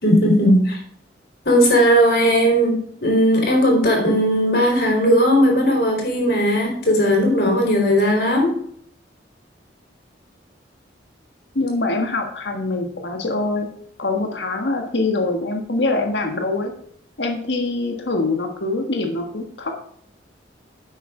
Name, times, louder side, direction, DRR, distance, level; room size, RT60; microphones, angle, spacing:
voice 1, 0.0-0.8 1.4-8.5, equal, 65° left, 1 dB, 4.1 m, -17 dB
voice 2, 11.5-13.7 14.0-16.7 17.2-19.7, left 2 dB, 85° left, 3 dB, 1.5 m, -24 dB
11.0 x 8.1 x 3.8 m, 0.64 s
head